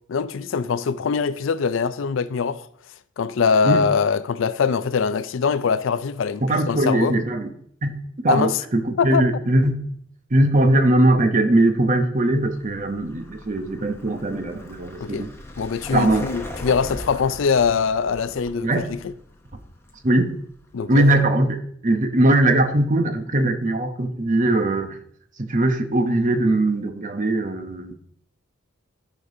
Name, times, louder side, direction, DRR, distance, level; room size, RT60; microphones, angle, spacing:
voice 1, 0.1-2.7 3.2-7.2 8.3-8.5 9.0-9.2 15.0-15.3 15.6-19.1 20.7-21.3, left 5 dB, 80° left, 0.4 m, -23 dB
voice 2, 6.4-7.5 7.8-9.8 10.3-15.3 15.9-16.2 18.6-18.9 20.0-20.3 20.9-21.6 21.8-25.0 25.4-27.9, right 1 dB, 40° right, 0.8 m, -20 dB
Vehicle, 12.4-21.2, left 1 dB, 15° left, 0.8 m, -39 dB
13.5 x 5.1 x 2.7 m
head